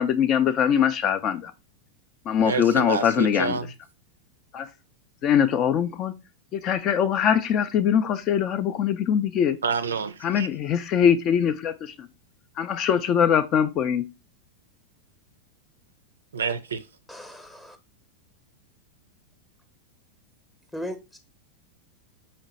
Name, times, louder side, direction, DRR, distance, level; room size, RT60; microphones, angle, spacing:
voice 1, 0.0-1.5 2.3-3.6 4.5-4.7 5.2-6.1 6.5-9.6 10.2-12.1 12.6-14.1, left 8 dB, 35° left, 0.4 m, -22 dB
voice 2, 2.4-3.7 9.6-10.5 16.3-16.9, right 5 dB, 70° right, 0.4 m, -28 dB
voice 3, 17.1-17.8 20.7-21.2, equal, 5° left, 0.8 m, -37 dB
4.3 x 2.9 x 3.9 m
figure-of-eight pair, 90°, 0 cm